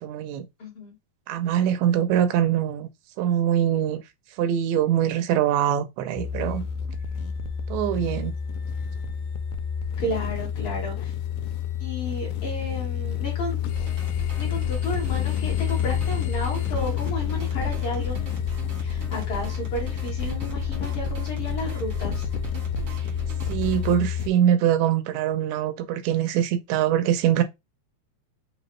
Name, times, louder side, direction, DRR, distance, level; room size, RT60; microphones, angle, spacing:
voice 1, 0.0-0.5 1.3-2.9 3.2-4.0 4.4-6.7 7.7-8.3 23.5-27.4, right 10 dB, 80° right, 1.8 m, -23 dB
voice 2, 0.6-1.0 9.9-11.1 11.8-13.9 14.4-18.2 18.8-22.3, equal, 50° left, 1.9 m, -33 dB
sound 1, 6.2-24.3, left 9 dB, 85° left, 2.0 m, -29 dB
sound 2, 13.7-23.9, left 1 dB, 50° right, 1.1 m, -37 dB
5.0 x 2.4 x 3.1 m
omnidirectional pair, 3.5 m